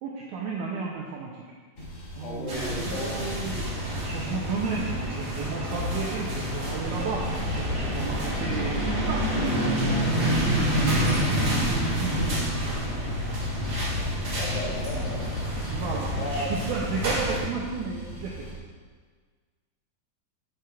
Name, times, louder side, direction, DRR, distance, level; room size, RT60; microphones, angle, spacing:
voice 1, 0.0-1.5 2.1-3.6 4.0-9.3 10.2-12.6 15.7-18.5, right 5 dB, 90° right, -2 dB, 1.7 m, -33 dB
sound 1, 1.8-6.5 6.9-18.6, equal, 30° left, 2.2 m, -40 dB
voice 2, 2.2-3.3 13.9-14.1 14.3-15.3 16.2-16.6, left 2 dB, 75° left, -3 dB, 3.1 m, -34 dB
sound 2, 2.5-17.4, equal, 50° right, 1.1 m, -28 dB
10.5 x 7.2 x 2.4 m, 1.5 s
omnidirectional pair, 4.3 m